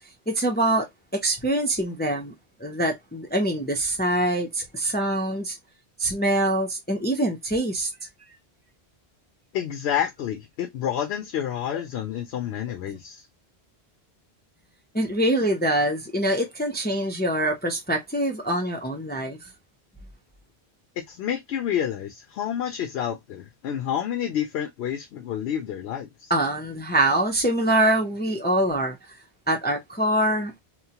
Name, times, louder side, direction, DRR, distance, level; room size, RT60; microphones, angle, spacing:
voice 1, 0.3-0.9 1.1-2.3 2.6-5.6 6.0-7.9 14.9-19.4 26.3-29.0 29.5-30.5, right 1 dB, 15° left, 0.3 m, -24 dB
voice 2, 9.5-13.3 21.0-26.3, left 9 dB, 75° left, 0.8 m, -29 dB
2.9 x 2.0 x 2.8 m
omnidirectional pair, 1.1 m